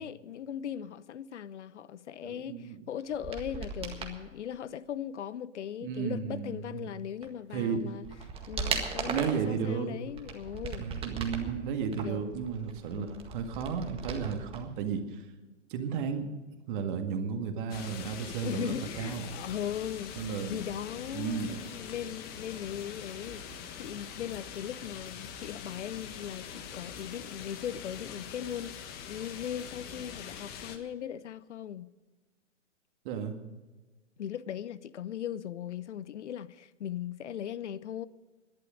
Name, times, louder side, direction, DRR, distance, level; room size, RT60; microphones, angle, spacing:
voice 1, 0.0-8.1 8.5-10.9 11.9-12.4 12.9-13.3 15.4-15.6 18.4-20.1 20.5-31.9 34.2-38.1, left 9 dB, 70° left, 0.8 m, -39 dB
voice 2, 2.2-2.8 5.8-6.9 7.5-7.8 9.1-9.9 10.8-15.2 15.7-16.3 16.7-19.3 20.2-20.6 21.1-21.6 33.0-33.3, right 6 dB, 40° right, 2.0 m, -33 dB
sound 1, 3.1-4.2 7.2-7.3 7.8-9.5 10.0-11.5 11.9-14.6 14.9-15.0, right 5 dB, 15° right, 1.7 m, -37 dB
sound 2, 17.7-30.8, left 7 dB, 25° left, 1.3 m, -43 dB
17.0 x 11.5 x 5.2 m
hypercardioid pair, 130°, 37 cm